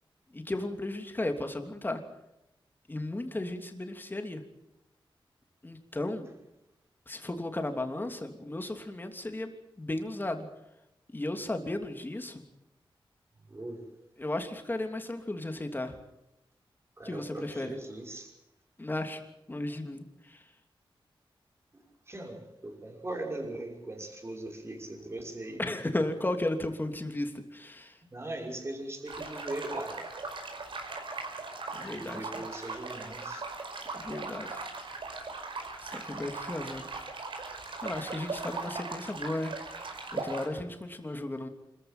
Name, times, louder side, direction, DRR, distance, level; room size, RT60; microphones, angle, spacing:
voice 1, 0.3-2.0 2.9-4.4 5.6-6.3 7.1-9.5 9.8-10.5 11.1-12.4 14.2-16.0 17.0-17.8 18.8-19.2 19.5-20.4 25.6-28.0 31.7-32.4 33.9-34.7 35.8-36.9 37.8-39.5 40.1-41.5, left 1 dB, 20° left, 6 dB, 3.0 m, -35 dB
voice 2, 13.5-13.8 17.0-18.3 21.7-25.7 28.1-30.1 31.7-33.4, right 1 dB, 30° right, 1 dB, 5.8 m, -40 dB
sound 1, 29.1-40.5, right 3 dB, 65° right, 5.3 m, -39 dB
26.5 x 14.5 x 9.1 m, 0.88 s
wide cardioid pair, 105°, 9 cm